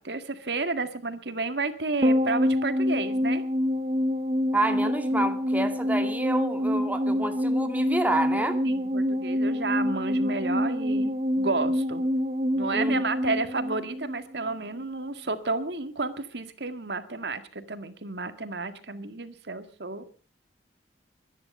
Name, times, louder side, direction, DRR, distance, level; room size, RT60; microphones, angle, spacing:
voice 1, 0.0-3.4 8.6-12.0 12.5-20.1, right 3 dB, 70° right, 9 dB, 1.9 m, -31 dB
sound 1, 2.0-14.5 14.8-14.9, equal, 35° right, 0.8 m, -26 dB
voice 2, 4.5-8.6 12.7-13.0, right 2 dB, 10° right, 6 dB, 2.2 m, -28 dB
23.0 x 10.5 x 5.4 m, 0.38 s
head